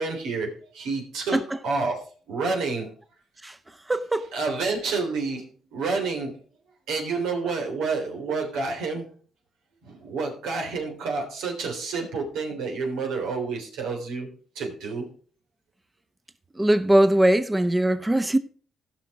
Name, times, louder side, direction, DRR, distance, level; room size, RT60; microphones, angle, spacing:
voice 1, 0.0-2.9 4.3-5.4 5.7-6.4 6.9-9.1 9.8-14.3 14.5-15.1, right 4 dB, 90° right, 3.4 m, -29 dB
voice 2, 3.9-4.3 16.6-18.4, right 1 dB, 15° right, 0.8 m, -20 dB
16.5 x 5.9 x 4.8 m
cardioid pair, 90°, 0 cm